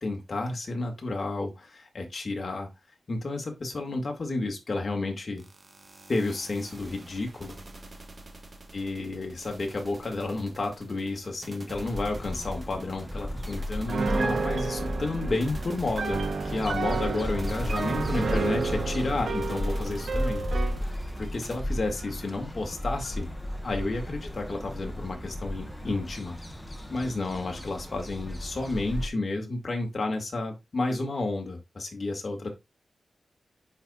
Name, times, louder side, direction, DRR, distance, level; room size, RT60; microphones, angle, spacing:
voice 1, 0.0-2.7 3.1-5.5 6.1-7.6 8.7-20.4 21.2-23.3 23.6-26.4 26.9-32.5, left 2 dB, 45° left, 1.8 m, -31 dB
sound 1, 5.4-21.6, right 2 dB, 35° right, 1.1 m, -49 dB
sound 2, 11.7-29.1, equal, 10° left, 1.0 m, -34 dB
Piano, 13.9-20.8, right 4 dB, 75° right, 0.8 m, -31 dB
10.5 x 4.1 x 2.3 m
wide cardioid pair, 130°, 0 cm